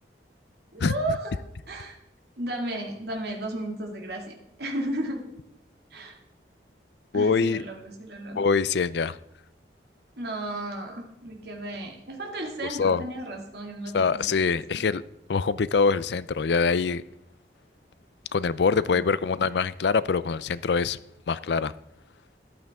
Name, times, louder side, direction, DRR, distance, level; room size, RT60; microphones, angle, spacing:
voice 1, 0.7-1.3 1.7-2.0 2.4-5.3 5.9-6.2 7.1-8.5 10.2-14.9 18.9-19.1, right 1 dB, 65° right, 1 dB, 2.4 m, -34 dB
voice 2, 7.1-7.6 8.4-9.2 12.8-13.0 13.9-15.0 15.3-17.0 18.3-21.0 21.3-21.7, left 5 dB, 70° left, 17 dB, 0.4 m, -24 dB
14.0 x 11.5 x 3.6 m, 0.79 s
head